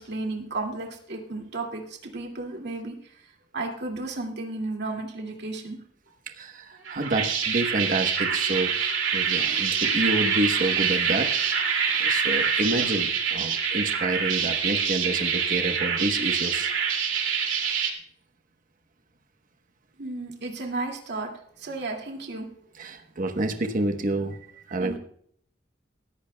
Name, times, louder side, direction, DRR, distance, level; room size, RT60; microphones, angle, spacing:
voice 1, 0.0-3.0 3.5-5.8 20.0-21.3 21.6-22.5 24.8-25.0, right 2 dB, 60° right, 1 dB, 2.3 m, -33 dB
voice 2, 6.3-8.8 9.1-11.7 11.9-16.7 22.7-25.0, right 2 dB, 45° right, 6 dB, 1.1 m, -28 dB
sound 1, 6.8-17.9, right 6 dB, 90° right, 2.5 m, -25 dB
19.5 x 14.0 x 2.3 m, 0.63 s
head